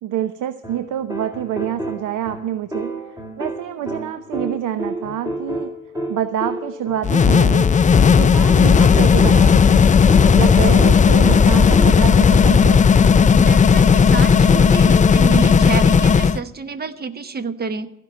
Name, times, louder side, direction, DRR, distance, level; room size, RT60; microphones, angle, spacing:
voice 1, 0.0-5.7 6.1-7.7 8.2-9.9 10.3-12.8, right 10 dB, 80° right, 11 dB, 0.7 m, -27 dB
sound 1, 0.6-12.3 14.5-15.3, right 1 dB, 10° right, 2.6 m, -31 dB
sound 2, 7.0-16.4, left 6 dB, 25° left, 0.4 m, -13 dB
voice 2, 13.4-17.9, right 4 dB, 30° right, 12 dB, 1.0 m, -28 dB
15.5 x 5.5 x 9.3 m, 0.85 s
cardioid pair, 90°, 30 cm